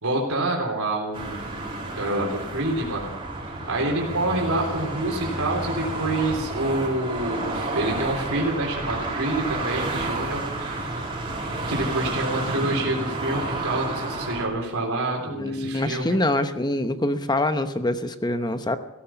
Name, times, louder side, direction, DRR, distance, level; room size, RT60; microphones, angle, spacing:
voice 1, 0.0-3.1 3.7-11.0 11.7-16.2, right 2 dB, 90° right, 0 dB, 3.6 m, -27 dB
sound 1, 1.1-14.5, right 2 dB, 25° right, 3.4 m, -30 dB
voice 2, 15.3-18.8, left 1 dB, 20° left, 9 dB, 0.9 m, -25 dB
16.0 x 14.5 x 5.8 m, 1.0 s
head